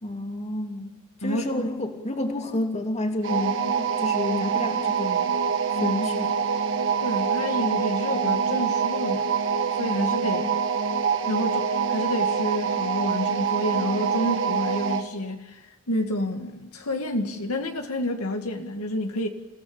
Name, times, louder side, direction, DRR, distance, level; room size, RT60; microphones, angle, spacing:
voice 1, 0.0-0.9 1.2-5.2 5.8-6.3, left 1 dB, 30° left, 2.9 m, -29 dB
voice 2, 1.2-1.7 7.0-9.3 9.8-10.5 11.3-19.3, left 1 dB, 75° left, 2.1 m, -29 dB
sound 1, 3.2-15.1, right 6 dB, 60° right, 2.0 m, -25 dB
29.0 x 16.5 x 8.9 m
head